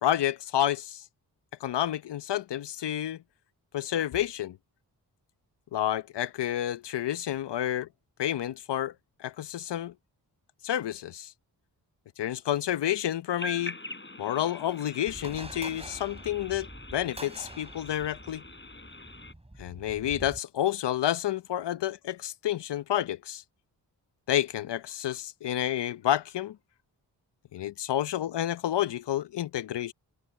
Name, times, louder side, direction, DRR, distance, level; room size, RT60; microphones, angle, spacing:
voice 1, 0.0-1.0 1.6-3.2 3.7-4.6 5.7-7.9 8.2-8.9 9.2-9.9 10.6-11.3 12.2-13.8 14.2-18.4 19.6-23.4 24.3-26.6 27.5-29.9, left 12 dB, 70° left, 0.8 m, -29 dB
sound 1, 13.4-19.3, left 2 dB, 25° left, 7.6 m, -43 dB
sound 2, 15.1-20.4, right 1 dB, 15° right, 4.3 m, -46 dB
cardioid pair, 55°, 43 cm